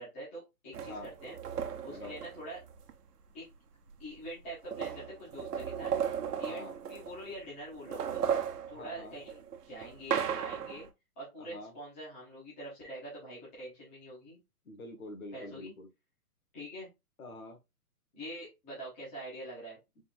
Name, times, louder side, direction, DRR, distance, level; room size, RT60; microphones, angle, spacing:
voice 1, 0.0-2.6 3.3-3.4 4.0-5.9 6.4-8.2 8.7-10.9 11.2-14.4 15.3-15.7 16.5-16.9 18.1-19.8, right 1 dB, 10° left, 1.0 m, -45 dB
sound 1, 0.7-2.9 3.9-4.0 4.3-7.4 7.7-10.9, right 8 dB, 90° right, 1.0 m, -36 dB
voice 2, 6.4-6.7 8.7-9.1 11.4-11.7 14.6-15.9 17.2-17.6, left 2 dB, 65° left, 1.6 m, -46 dB
4.1 x 3.7 x 2.5 m
hypercardioid pair, 180°, 45 cm